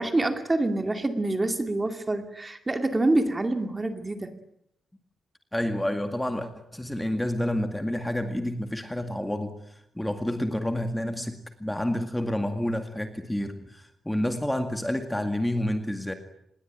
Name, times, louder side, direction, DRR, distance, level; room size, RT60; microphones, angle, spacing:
voice 1, 0.0-4.3, right 2 dB, 15° right, 7 dB, 2.4 m, -26 dB
voice 2, 5.5-9.5 10.0-16.1, left 1 dB, 5° left, 7 dB, 2.1 m, -29 dB
26.5 x 21.5 x 9.2 m, 0.76 s
wide cardioid pair, 180°, 0 cm